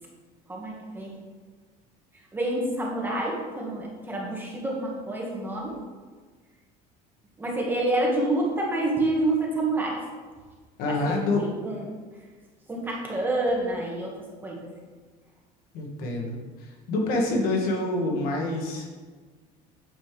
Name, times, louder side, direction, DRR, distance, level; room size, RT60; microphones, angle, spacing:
voice 1, 0.5-1.2 2.3-5.8 7.4-10.0 10.9-11.8 12.7-14.1 14.4-14.7, right 2 dB, 10° right, -2 dB, 1.5 m, -28 dB
voice 2, 10.8-11.5 15.7-16.4 16.9-18.9, left 2 dB, 70° left, 0 dB, 1.6 m, -26 dB
8.3 x 6.4 x 3.3 m, 1.4 s
cardioid pair, 145°, 16 cm